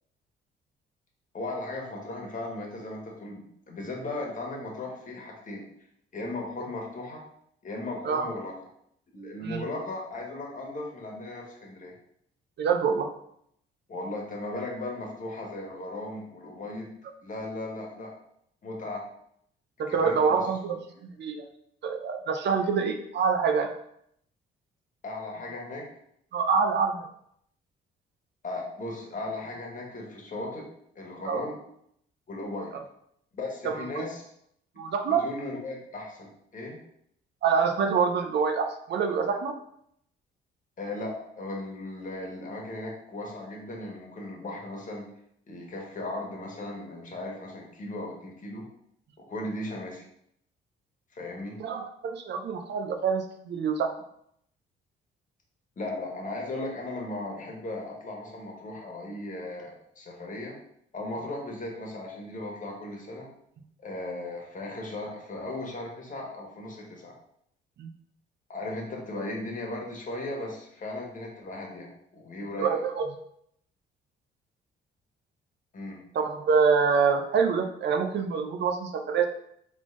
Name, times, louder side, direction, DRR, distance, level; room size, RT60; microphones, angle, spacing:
voice 1, 1.3-5.6 6.1-7.2 7.6-8.5 9.1-12.0 13.9-16.9 17.2-18.1 18.6-19.0 19.9-20.5 25.0-25.8 28.4-30.7 30.9-31.6 32.3-32.7 33.3-34.3 35.1-36.8 40.8-45.1 45.5-48.6 49.2-50.0 51.1-51.6 55.8-60.5 60.9-63.3 63.8-67.1 68.5-72.8 75.7-76.0, left 2 dB, 40° left, -1 dB, 1.4 m, -37 dB
voice 2, 12.6-13.1 19.8-20.8 21.0-21.5 21.8-23.7 26.3-27.1 31.2-31.4 33.6-34.0 34.8-35.2 37.4-39.5 51.6-53.9 67.8-67.9 72.6-73.1 76.1-79.2, right 5 dB, 60° right, 5 dB, 0.6 m, -26 dB
3.7 x 3.3 x 3.7 m, 0.72 s
cardioid pair, 90°, 20 cm